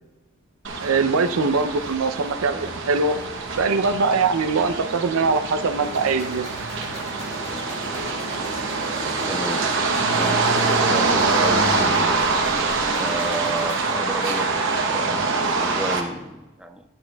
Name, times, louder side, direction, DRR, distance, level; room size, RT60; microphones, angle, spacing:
sound 1, 0.6-16.0, right 3 dB, 60° right, 0.9 m, -24 dB
voice 1, 0.8-3.2 3.6-6.5, right 4 dB, 80° right, 9 dB, 0.5 m, -22 dB
sound 2, 5.8-13.8, equal, 30° left, 1.3 m, -38 dB
voice 2, 9.3-9.6 10.1-10.4 10.9-12.3 13.0-15.2 15.5-16.8, right 1 dB, 5° right, 6 dB, 0.4 m, -31 dB
10.5 x 8.7 x 2.3 m, 1.1 s
head